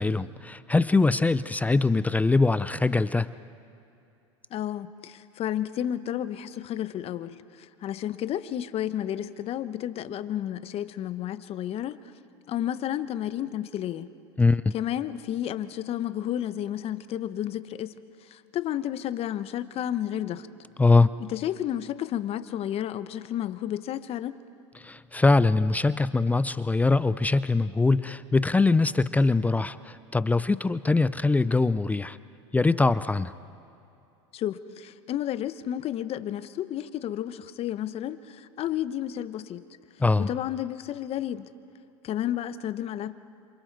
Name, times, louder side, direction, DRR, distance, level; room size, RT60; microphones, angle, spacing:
voice 1, 0.0-3.3 14.4-14.7 20.8-21.2 24.8-32.2 32.5-33.3 40.0-40.3, left 3 dB, 10° left, 15 dB, 0.4 m, -22 dB
voice 2, 4.5-12.0 12.5-14.1 14.7-17.9 18.2-20.5 21.2-24.4 34.3-39.6 40.2-41.5 42.0-43.1, left 11 dB, 40° left, 13 dB, 1.0 m, -31 dB
28.0 x 27.0 x 4.7 m, 2.7 s
hypercardioid pair, 100°, 15 cm